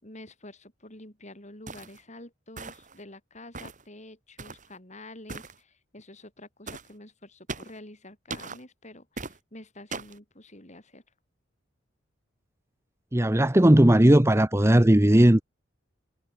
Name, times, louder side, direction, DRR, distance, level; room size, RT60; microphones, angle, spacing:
voice 1, 0.0-11.0, left 1 dB, 40° left, 7.0 m, -48 dB
sound 1, 1.7-2.0 2.6-3.0 3.5-3.8 4.4-4.7 5.3-5.6 6.7-6.9 7.5-7.8 8.3-8.6 9.2-9.4 9.9-10.2, right 3 dB, 40° right, 5.8 m, -38 dB
voice 2, 13.1-15.4, right 1 dB, 15° right, 0.8 m, -17 dB
head